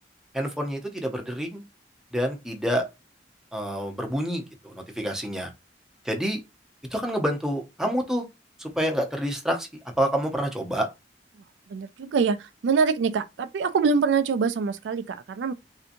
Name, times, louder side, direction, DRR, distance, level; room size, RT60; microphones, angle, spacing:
voice 1, 0.3-1.6 2.1-2.9 3.5-5.5 6.0-6.4 6.9-8.2 8.6-9.7 10.0-10.9, equal, 5° right, 0.7 m, -27 dB
voice 2, 11.7-15.5, right 5 dB, 80° right, 0.3 m, -24 dB
3.4 x 2.7 x 2.5 m
head